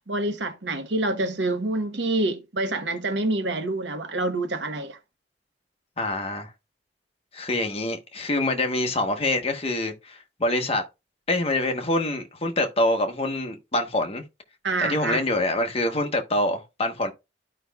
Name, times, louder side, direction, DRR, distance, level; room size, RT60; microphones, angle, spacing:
voice 1, 0.1-5.0 14.6-15.3, right 2 dB, 80° right, 1.0 m, -27 dB
voice 2, 6.0-6.5 7.3-10.8 11.3-14.2 14.8-17.1, left 1 dB, 35° left, 1.0 m, -25 dB
12.5 x 5.1 x 2.3 m
head